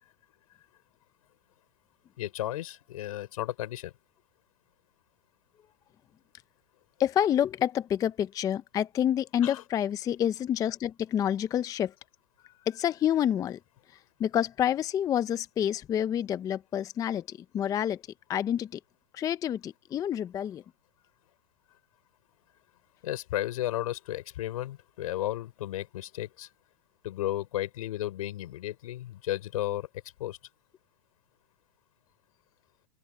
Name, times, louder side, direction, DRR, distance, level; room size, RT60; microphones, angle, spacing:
voice 1, 2.2-3.9 9.4-9.6 23.0-26.5 27.0-29.9 30.2-30.4, left 14 dB, 70° left, 5.3 m, -33 dB
voice 2, 7.0-11.9 12.4-13.6 14.2-18.0 18.3-18.8 19.1-20.6, left 10 dB, 20° left, 0.5 m, -28 dB
hypercardioid pair, 140°, 19 cm